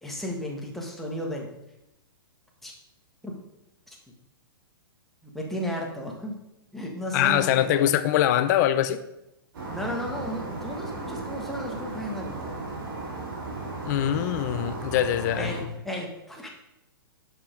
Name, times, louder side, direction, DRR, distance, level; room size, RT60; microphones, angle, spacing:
voice 1, 0.0-1.5 2.6-2.7 3.2-3.3 3.9-4.0 5.3-6.4 6.7-7.9 9.7-12.5 15.4-16.5, equal, ahead, -1 dB, 1.5 m, -34 dB
voice 2, 7.1-9.0 13.8-15.5, left 11 dB, 45° left, 12 dB, 0.7 m, -23 dB
sound 1, 9.5-15.6, right 3 dB, 60° right, 2.8 m, -35 dB
6.7 x 5.8 x 5.1 m, 0.88 s
hypercardioid pair, 135°, 13 cm